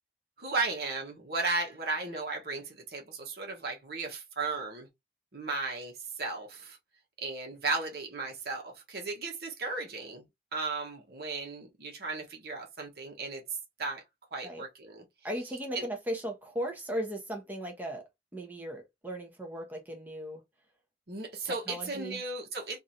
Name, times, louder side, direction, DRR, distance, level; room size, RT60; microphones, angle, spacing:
voice 1, 0.4-4.9 5.3-6.8 7.2-10.2 10.5-13.4 13.8-14.0 14.3-15.0 15.7-15.8 21.1-22.8, right 3 dB, 60° right, 1.1 m, -35 dB
voice 2, 15.2-18.0 18.3-20.4 21.5-22.2, right 1 dB, 10° right, 0.8 m, -37 dB
3.1 x 2.6 x 2.6 m
head